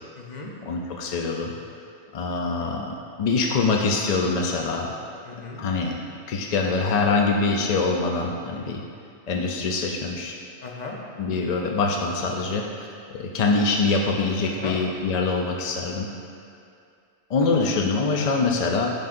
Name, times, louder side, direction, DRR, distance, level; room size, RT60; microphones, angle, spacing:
voice 1, 0.1-0.5 2.6-2.8 5.2-5.6 10.6-11.0 11.8-12.0 14.5-14.8 17.4-17.7 18.2-18.4, left 4 dB, 40° left, -2 dB, 0.8 m, -37 dB
voice 2, 0.7-1.5 2.1-4.9 5.6-5.9 6.3-8.8 9.3-10.3 11.2-16.1 17.3-18.9, left 3 dB, 65° left, 1 dB, 0.4 m, -24 dB
9.4 x 5.2 x 2.5 m, 2.4 s
omnidirectional pair, 1.2 m